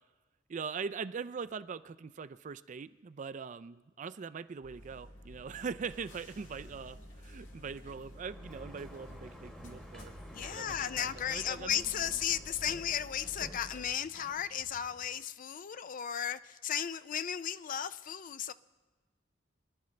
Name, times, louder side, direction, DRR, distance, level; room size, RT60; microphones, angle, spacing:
voice 1, 0.5-10.1 10.4-11.8, right 5 dB, 40° right, 14 dB, 0.4 m, -42 dB
sound 1, 4.6-13.9, equal, 70° left, 2.5 m, -51 dB
Sliding door, 8.1-15.2, equal, 5° left, 1.2 m, -52 dB
voice 2, 10.3-18.5, left 9 dB, 45° left, 14 dB, 0.4 m, -35 dB
24.5 x 11.5 x 3.3 m, 1.3 s
head